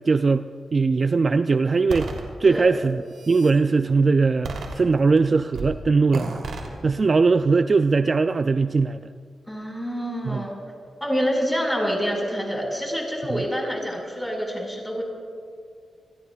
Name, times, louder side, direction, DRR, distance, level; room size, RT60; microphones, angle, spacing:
voice 1, 0.1-0.4 0.7-2.1 2.4-6.4 6.8-9.0 10.3-10.4 13.3-13.4, right 4 dB, 40° right, 9 dB, 0.3 m, -20 dB
sound 1, 1.9-2.2 2.9-3.6 4.4-5.2 5.5-5.8 6.1-6.7, right 3 dB, 85° right, 2.9 m, -32 dB
voice 2, 9.5-10.5 11.0-15.0, equal, 5° left, -1 dB, 4.9 m, -27 dB
28.5 x 21.0 x 2.3 m, 2.1 s
wide cardioid pair, 120°, 0 cm